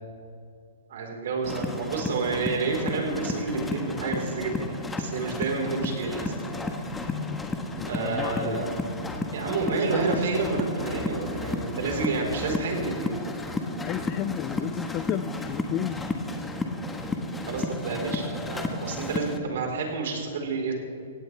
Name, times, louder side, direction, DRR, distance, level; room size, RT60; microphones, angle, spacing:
voice 1, 0.9-6.3 7.8-8.7 9.3-13.2 17.5-20.7, right 3 dB, 65° right, 1 dB, 4.2 m, -29 dB
sound 1, 1.4-19.4, left 2 dB, 10° left, 1.3 m, -32 dB
voice 2, 7.1-7.5 7.8-8.7 13.8-16.0, left 13 dB, 30° left, 16 dB, 0.4 m, -33 dB
17.5 x 17.0 x 3.4 m, 2.6 s
hypercardioid pair, 145°, 0 cm